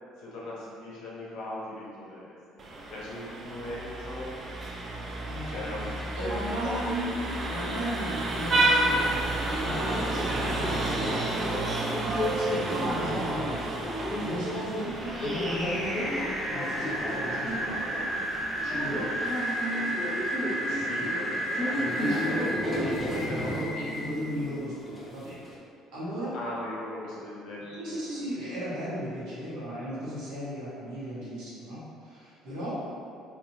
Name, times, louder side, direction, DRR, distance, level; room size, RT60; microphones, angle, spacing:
voice 1, 0.2-4.3 5.5-7.0 7.5-8.0 20.7-22.4 23.3-23.6 26.3-28.3, left 1 dB, 70° left, -6 dB, 0.6 m, -39 dB
Vehicle horn car horn honking, 2.6-19.4, right 2 dB, 40° right, 0.4 m, -32 dB
voice 2, 5.2-11.7 12.0-13.7 14.2-16.1 16.5-18.0 18.6-19.2 20.7-21.1 21.7-25.4 25.9-26.3 27.6-32.8, equal, 70° right, -10 dB, 1.0 m, -36 dB
Subway metro underground, 9.6-25.6, equal, 25° left, 0.6 m, -34 dB
sound 1, 14.7-22.5, right 1 dB, 15° right, 0.8 m, -32 dB
2.7 x 2.5 x 2.6 m, 2.4 s
hypercardioid pair, 65°, 0 cm